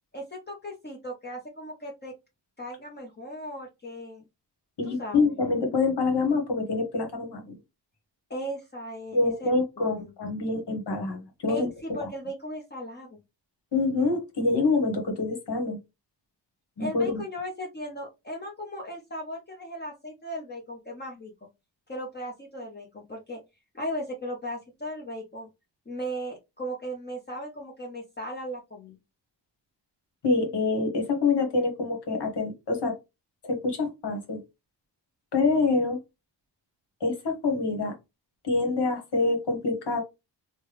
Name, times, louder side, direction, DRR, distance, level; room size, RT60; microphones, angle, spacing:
voice 1, 0.1-2.1 2.6-4.2 4.8-5.3 8.3-9.5 10.0-10.1 11.5-13.2 16.8-21.3 21.9-23.4 23.7-25.5 25.9-29.0, equal, 25° left, 0.8 m, -37 dB
voice 2, 4.8-7.6 9.1-11.7 12.0-12.1 13.7-15.8 16.8-17.2 30.2-33.0 33.5-34.4 35.3-36.0 37.0-37.9 38.4-40.0, left 3 dB, 70° left, 1.2 m, -26 dB
3.2 x 2.2 x 3.3 m
wide cardioid pair, 95°, 43 cm